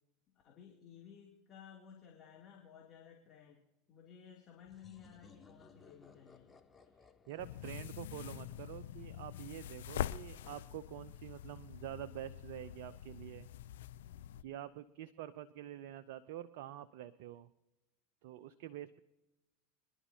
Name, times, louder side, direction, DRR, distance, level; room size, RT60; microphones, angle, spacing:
voice 1, 0.3-3.6 3.9-6.5, left 8 dB, 40° left, -2 dB, 2.8 m, -56 dB
sound 1, 4.6-9.2, left 4 dB, 20° left, 1.1 m, -62 dB
voice 2, 7.3-13.5 14.4-17.5 18.2-19.0, right 12 dB, 60° right, 13 dB, 0.5 m, -47 dB
sound 2, 7.4-14.4, left 11 dB, 70° left, 0.4 m, -45 dB
25.5 x 11.0 x 2.8 m, 0.98 s
hypercardioid pair, 85°, 0 cm